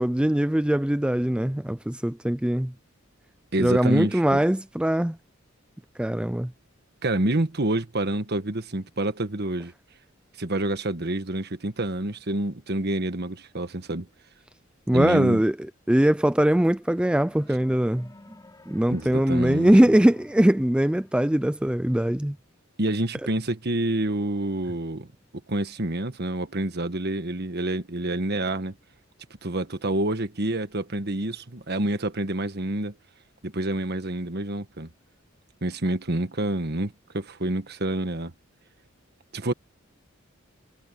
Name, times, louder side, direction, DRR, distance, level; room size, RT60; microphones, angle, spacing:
voice 1, 0.0-2.7 3.6-5.2 6.0-6.5 14.9-15.6 15.9-18.1 18.7-22.4, right 1 dB, 5° right, 0.4 m, -21 dB
voice 2, 3.5-4.4 7.0-9.7 10.4-14.1 14.9-15.4 18.9-19.7 22.8-25.1 25.5-28.7 29.4-32.9 33.4-34.9 35.6-38.3 39.3-39.5, right 1 dB, 50° right, 1.5 m, -28 dB
sound 1, 16.6-22.0, left 1 dB, 20° left, 2.9 m, -52 dB
head